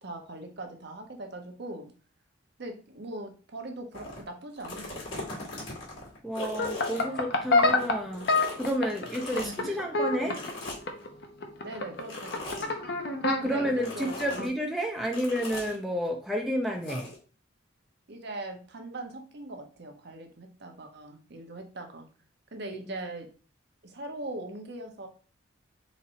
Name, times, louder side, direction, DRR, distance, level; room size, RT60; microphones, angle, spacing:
voice 1, 0.0-1.9 2.6-5.3 9.3-9.8 10.2-10.4 11.6-12.8 13.4-14.5 18.1-22.1 22.5-23.3 23.8-25.1, right 2 dB, 55° right, 4 dB, 0.8 m, -41 dB
sound 1, 3.9-4.2 4.6-7.9 8.1-9.6 10.3-11.0 12.0-12.7 13.8-14.5 15.1-15.8 16.8-17.2, left 2 dB, 70° left, 2.3 m, -40 dB
voice 2, 6.2-8.3 8.6-10.4 13.4-17.1 22.7-23.1, equal, ahead, 0 dB, 0.5 m, -31 dB
sound 2, 6.4-14.5, left 3 dB, 55° left, 0.7 m, -28 dB
4.1 x 2.6 x 4.2 m, 0.37 s
head